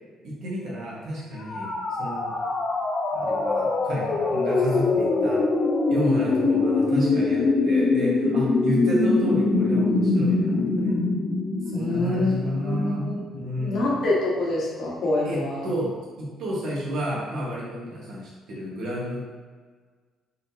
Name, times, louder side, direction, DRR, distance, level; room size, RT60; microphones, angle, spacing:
voice 1, 0.2-1.7 2.0-2.3 3.1-5.5 5.9-11.0 11.7-14.0 15.2-19.2, equal, 65° right, -5 dB, 1.4 m, -31 dB
sound 1, 1.4-13.2, left 3 dB, 35° left, 0.6 m, -23 dB
voice 2, 11.7-13.2 13.6-15.6, left 2 dB, 60° left, -5 dB, 1.4 m, -26 dB
4.3 x 3.7 x 2.8 m, 1.5 s
cardioid pair, 125°, 0 cm